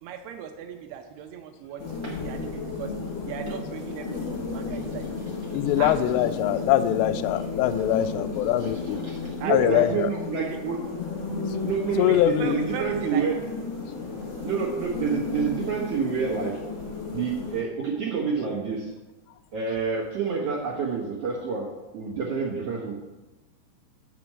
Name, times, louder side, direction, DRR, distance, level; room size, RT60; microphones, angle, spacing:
voice 1, 0.0-5.1 5.8-6.0 9.4-9.8 10.3-10.6 12.0-13.3, right 8 dB, 80° right, 6 dB, 2.4 m, -37 dB
sound 1, 1.8-17.6, left 4 dB, 45° left, 3.0 m, -33 dB
voice 2, 5.5-9.0 9.5-10.1 12.0-12.6, left 11 dB, 90° left, 11 dB, 2.7 m, -23 dB
voice 3, 9.0-10.8 11.6-13.4 14.4-16.6 17.1-18.9 19.5-22.9, right 5 dB, 55° right, -5 dB, 1.8 m, -28 dB
6.8 x 6.1 x 7.5 m, 1.1 s
omnidirectional pair, 4.8 m